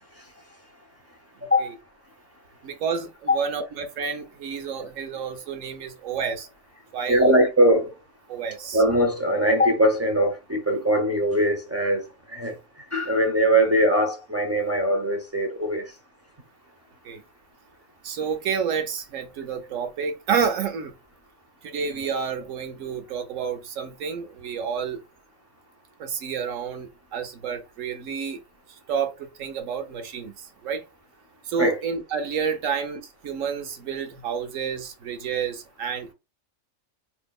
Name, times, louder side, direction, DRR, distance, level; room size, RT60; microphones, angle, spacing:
voice 1, 1.4-1.7 2.6-6.5 6.9-7.4 8.3-8.8 17.0-17.2 18.0-20.9 21.6-25.0 26.0-28.4 28.7-30.8 31.5-36.1, right 6 dB, 75° right, 1.0 m, -30 dB
voice 2, 7.1-7.9 8.7-12.0 12.3-12.5 12.9-15.8 31.6-31.7, equal, 20° right, 0.4 m, -21 dB
4.4 x 2.8 x 2.2 m
omnidirectional pair, 1.4 m